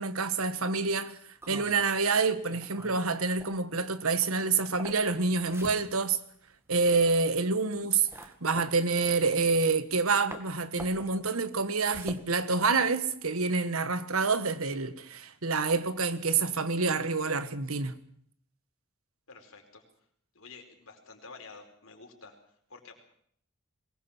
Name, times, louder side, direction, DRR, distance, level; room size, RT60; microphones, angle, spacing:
voice 1, 0.0-6.2 6.7-18.0, right 4 dB, 90° right, 1.6 m, -27 dB
sound 1, 1.4-10.0 10.3-13.2, right 1 dB, 10° right, 2.1 m, -48 dB
voice 2, 19.3-19.8 20.3-23.0, left 4 dB, 75° left, 4.7 m, -50 dB
22.5 x 20.0 x 7.4 m
head